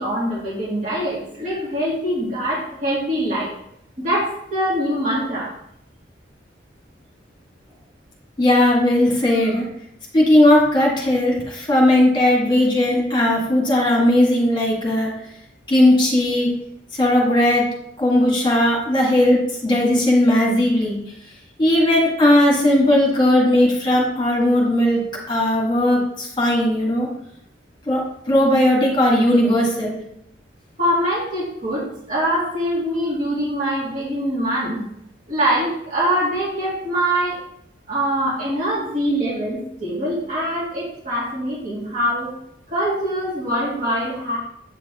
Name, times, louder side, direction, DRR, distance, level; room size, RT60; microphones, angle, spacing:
voice 1, 0.0-3.5 4.0-5.5 30.8-34.8 35.3-37.4 37.9-42.3 42.7-44.4, equal, 40° right, -8 dB, 2.5 m, -23 dB
voice 2, 8.4-9.7 10.1-15.1 15.7-16.5 17.0-21.0 21.6-27.1 27.9-28.0 28.3-30.0, left 1 dB, 25° left, -2 dB, 1.7 m, -17 dB
8.0 x 6.1 x 3.0 m, 0.74 s
head